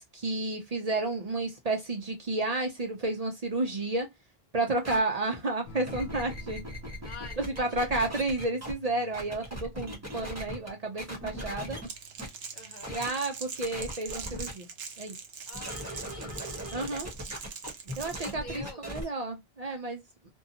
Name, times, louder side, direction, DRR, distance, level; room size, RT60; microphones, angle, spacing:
voice 1, 0.0-4.1 4.5-6.6 7.4-11.8 12.9-14.7 15.0-15.2 16.7-17.1 18.0-20.0, right 2 dB, 45° right, 0.6 m, -31 dB
sound 1, 4.8-5.0 5.7-8.7 9.1-10.7 11.0-11.9 12.2-12.3 12.8-13.1 13.6-14.5 15.5-19.0, equal, 15° right, 0.9 m, -39 dB
sound 2, 5.7-14.7 16.2-16.7, right 3 dB, 80° left, 0.9 m, -52 dB
voice 2, 7.0-8.1 12.5-13.0 15.5-16.5 18.2-19.1, left 3 dB, 55° left, 0.7 m, -47 dB
Crackle, 11.8-18.3, right 6 dB, 80° right, 0.9 m, -42 dB
2.6 x 2.3 x 2.6 m
omnidirectional pair, 1.0 m